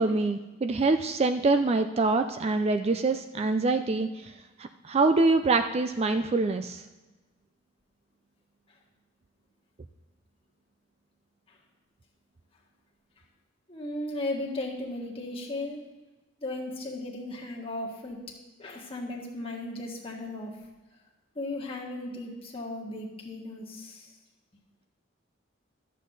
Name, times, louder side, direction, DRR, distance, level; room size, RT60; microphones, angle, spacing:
voice 1, 0.0-4.3 4.6-6.8, right 3 dB, 30° right, 8 dB, 0.3 m, -25 dB
voice 2, 13.7-15.8 16.4-18.2 18.6-20.5 21.3-24.1, left 2 dB, 30° left, -1 dB, 1.5 m, -36 dB
12.5 x 7.4 x 4.0 m, 1.2 s
head